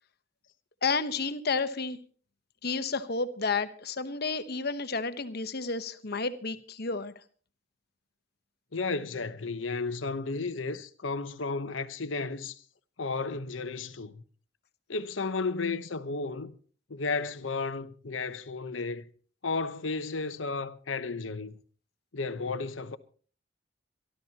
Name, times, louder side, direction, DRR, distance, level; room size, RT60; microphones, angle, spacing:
voice 1, 0.8-2.0 2.6-7.1, left 4 dB, 55° left, 1.1 m, -31 dB
voice 2, 8.7-12.6 13.0-14.2 14.9-16.5 16.9-19.0 19.4-21.6 22.1-23.0, left 4 dB, 85° left, 1.0 m, -33 dB
26.0 x 12.5 x 2.9 m
head